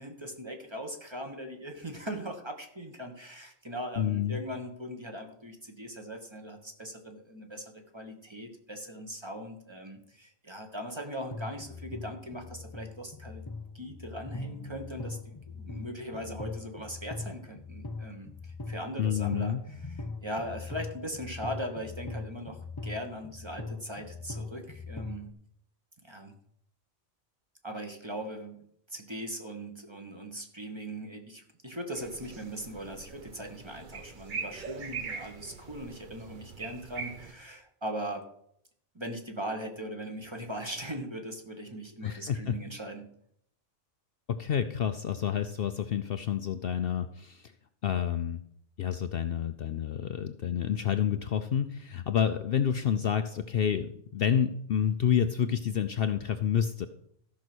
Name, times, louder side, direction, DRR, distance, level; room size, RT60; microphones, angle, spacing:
voice 1, 0.0-13.4 13.7-25.3 26.0-26.3 27.6-28.6 28.9-38.2 38.9-43.1, equal, 25° right, 3 dB, 1.4 m, -40 dB
voice 2, 4.0-4.4 19.0-19.6 42.0-42.6 44.3-47.5 47.8-48.4 48.8-56.9, left 8 dB, 60° left, 9 dB, 0.7 m, -29 dB
sound 1, 11.3-25.3, left 3 dB, 25° left, 0.5 m, -41 dB
sound 2, 31.9-37.3, right 5 dB, 45° right, 1.0 m, -42 dB
13.5 x 6.1 x 6.2 m, 0.69 s
omnidirectional pair, 1.2 m